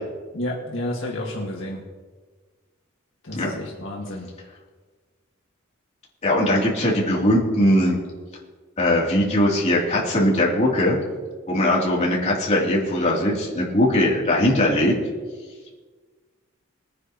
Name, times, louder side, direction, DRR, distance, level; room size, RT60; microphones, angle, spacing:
voice 1, 0.3-1.8 3.2-4.3, left 1 dB, 65° left, -2 dB, 1.9 m, -30 dB
voice 2, 6.2-8.0 8.8-11.0 11.5-14.9, left 1 dB, 35° left, -4 dB, 3.0 m, -20 dB
22.0 x 9.7 x 3.0 m, 1.4 s
head